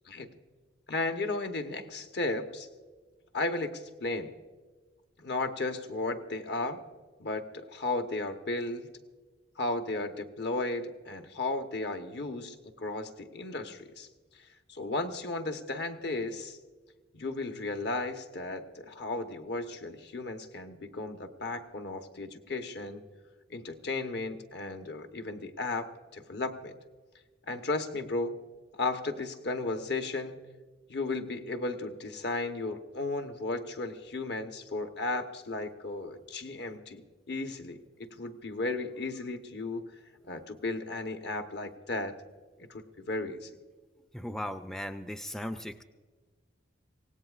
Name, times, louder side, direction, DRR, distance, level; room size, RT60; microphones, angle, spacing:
voice 1, 0.9-2.7 3.3-4.3 5.2-6.8 7.2-8.9 9.6-14.1 14.7-16.6 17.1-23.0 23.5-26.8 27.5-28.4 28.7-30.4 30.9-37.0 37.3-39.8 40.2-42.1 42.6-43.6, left 2 dB, 55° left, 6 dB, 1.0 m, -34 dB
voice 2, 44.1-45.8, equal, 5° left, 8 dB, 0.4 m, -37 dB
24.5 x 18.0 x 2.4 m, 1.4 s
head